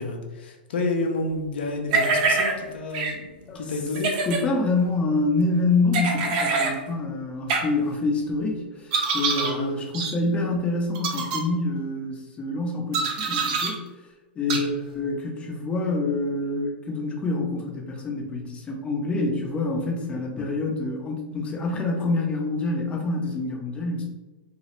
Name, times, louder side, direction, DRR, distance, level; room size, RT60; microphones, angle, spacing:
voice 1, 0.0-4.1 9.4-10.0 14.5-14.7, left 2 dB, 70° left, 2 dB, 0.5 m, -30 dB
sound 1, 1.9-2.5 2.9-3.1 3.9-4.4 5.9-6.7 7.5-7.6 8.9-9.5 9.9-10.1 11.0-11.4 12.9-13.7 14.5-14.6, right 4 dB, 45° right, 0.5 m, -24 dB
voice 2, 4.3-13.9 14.4-24.0, left 2 dB, 20° left, 0 dB, 0.5 m, -26 dB
2.3 x 2.0 x 2.9 m, 1.2 s
hypercardioid pair, 120°, 6 cm